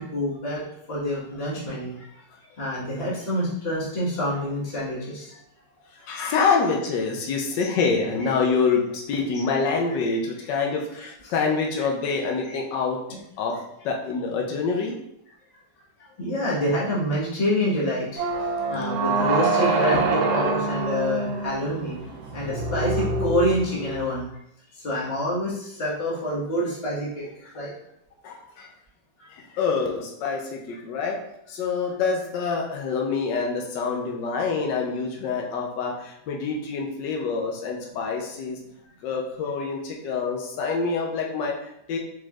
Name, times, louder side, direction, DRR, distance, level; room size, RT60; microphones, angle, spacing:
voice 1, 0.0-2.1 2.6-5.4 10.0-10.1 11.2-11.3 12.5-12.6 16.2-18.2 18.7-22.0 22.3-24.2 24.8-27.7, equal, 35° left, -7 dB, 1.5 m, -27 dB
voice 2, 6.0-13.0 13.4-14.9 19.9-20.1 22.0-22.1 28.2-28.7 29.3-31.2 31.5-38.6 39.0-42.0, left 5 dB, 85° left, 0 dB, 1.4 m, -26 dB
sound 1, 18.2-24.2, right 3 dB, 75° right, 1.1 m, -26 dB
4.8 x 4.1 x 2.4 m, 0.76 s
omnidirectional pair, 1.9 m